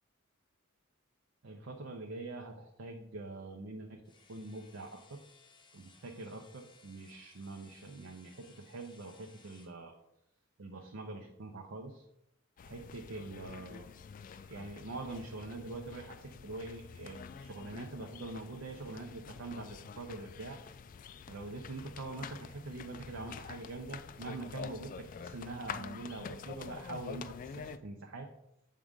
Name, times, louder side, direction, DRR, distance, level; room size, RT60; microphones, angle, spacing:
voice 1, 1.4-4.0 4.3-5.2 5.7-9.9 10.6-12.0 12.6-13.9 14.4-20.6 21.3-28.3, right 2 dB, 60° right, 2 dB, 0.6 m, -44 dB
sound 1, 4.0-9.8, left 4 dB, 20° left, 0.7 m, -62 dB
sound 2, 12.6-27.8, left 6 dB, 40° left, 0.3 m, -47 dB
7.5 x 3.6 x 5.2 m, 0.83 s
head